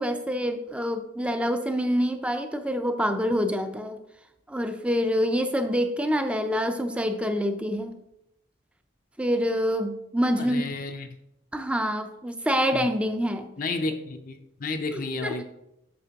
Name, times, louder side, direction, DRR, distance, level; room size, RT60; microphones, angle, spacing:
voice 1, 0.0-4.0 4.5-8.0 9.2-10.7 11.5-13.5 14.9-15.4, equal, 5° right, 8 dB, 0.5 m, -26 dB
voice 2, 10.4-11.1 12.7-12.9 13.6-15.4, left 3 dB, 45° left, 6 dB, 0.5 m, -32 dB
8.6 x 6.4 x 2.8 m, 0.86 s
head